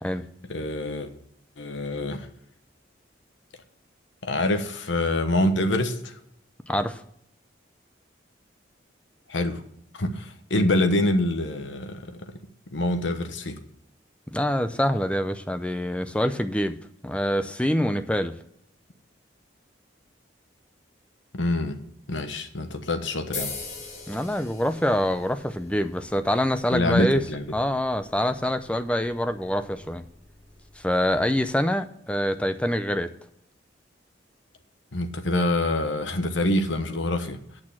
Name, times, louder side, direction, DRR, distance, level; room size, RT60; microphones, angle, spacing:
voice 1, 0.5-1.1 1.6-2.3 4.2-6.1 9.3-9.6 10.0-12.2 12.7-13.6 21.3-21.8 22.1-23.5 26.7-27.5 34.9-37.4, left 1 dB, 75° left, 1.0 m, -25 dB
voice 2, 6.7-7.0 14.3-16.8 17.0-18.3 24.1-27.2 27.5-30.0 30.8-33.1, equal, 5° left, 0.5 m, -25 dB
sound 1, 23.3-31.4, left 3 dB, 40° left, 2.8 m, -43 dB
8.7 x 6.3 x 7.3 m
head